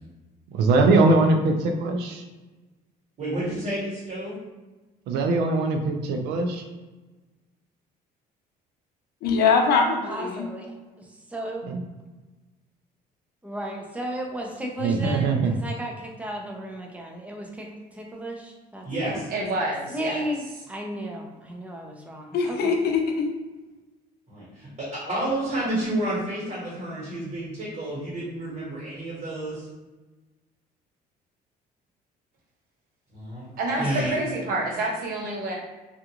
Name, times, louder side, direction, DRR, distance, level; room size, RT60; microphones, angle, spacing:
voice 1, 0.5-2.2 5.1-6.6 11.6-11.8 14.8-15.5, right 3 dB, 80° right, 4 dB, 0.5 m, -21 dB
voice 2, 3.2-4.3 18.8-19.3 24.3-29.7 33.1-34.1, right 1 dB, 45° right, -7 dB, 1.3 m, -30 dB
voice 3, 9.2-10.5 22.3-23.3, left 5 dB, 70° left, 3 dB, 0.5 m, -22 dB
voice 4, 10.1-11.7 13.4-19.2 19.9-22.7 33.8-34.1, right 1 dB, 10° right, 0 dB, 0.5 m, -34 dB
voice 5, 19.3-20.2 33.6-35.5, right 2 dB, 60° right, -3 dB, 0.9 m, -28 dB
2.5 x 2.3 x 2.9 m, 1.2 s
cardioid pair, 110°, 17 cm